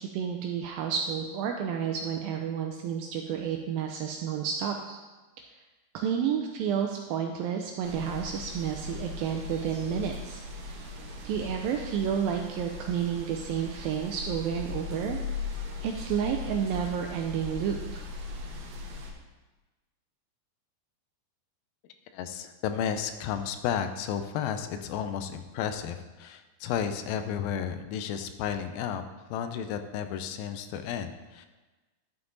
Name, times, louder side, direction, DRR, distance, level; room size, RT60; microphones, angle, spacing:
voice 1, 0.0-5.0 5.9-10.9 11.2-15.2 15.8-18.1, right 8 dB, 80° right, 3 dB, 2.1 m, -31 dB
sound 1, 7.8-19.1, left 3 dB, 65° right, 2.3 m, -39 dB
voice 2, 22.1-29.0 29.3-31.5, left 8 dB, 80° left, 9 dB, 2.2 m, -32 dB
11.5 x 5.9 x 3.9 m, 1.2 s
omnidirectional pair, 4.6 m